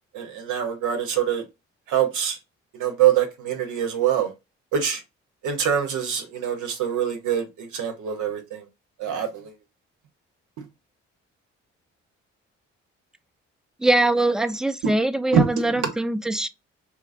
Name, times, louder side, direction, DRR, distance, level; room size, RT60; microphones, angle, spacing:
voice 1, 0.1-1.4 1.9-2.4 2.8-4.3 4.7-5.0 5.4-8.6 9.0-9.5 15.3-15.5, right 9 dB, 70° right, 0.7 m, -24 dB
voice 2, 13.8-16.5, right 2 dB, ahead, 0.3 m, -22 dB
2.9 x 2.4 x 2.3 m
hypercardioid pair, 45°, 32 cm